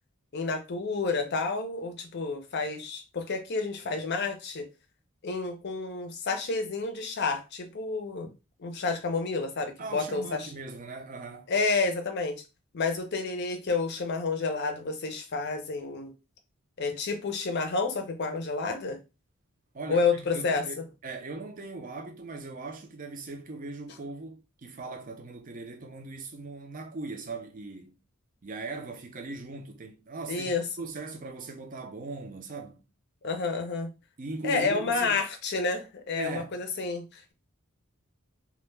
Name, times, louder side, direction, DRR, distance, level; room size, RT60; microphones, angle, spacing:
voice 1, 0.3-4.7 5.2-8.3 8.6-10.5 11.5-12.4 12.7-16.1 16.8-19.0 19.9-20.8 30.3-30.6 33.2-33.9 34.4-37.3, left 4 dB, 50° left, 0.5 m, -30 dB
voice 2, 9.8-11.5 19.7-28.0 28.4-30.5 30.8-32.8 34.2-35.2 36.2-36.6, right 3 dB, 40° right, 0.5 m, -39 dB
2.2 x 2.1 x 3.1 m
head